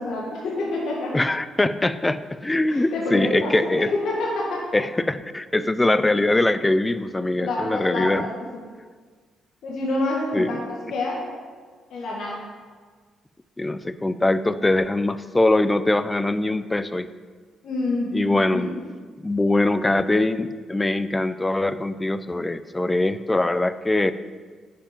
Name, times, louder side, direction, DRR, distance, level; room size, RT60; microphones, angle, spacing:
voice 1, 0.0-1.2 2.7-4.7 7.4-8.3 9.6-11.3 11.9-12.4 17.6-18.7, left 2 dB, 70° left, -4 dB, 1.7 m, -27 dB
voice 2, 1.1-3.9 4.7-8.2 10.3-10.6 13.6-17.1 18.1-18.8 19.2-24.1, left 2 dB, 15° left, 14 dB, 0.4 m, -22 dB
9.9 x 5.2 x 5.2 m, 1.5 s
cardioid pair, 90°, 0 cm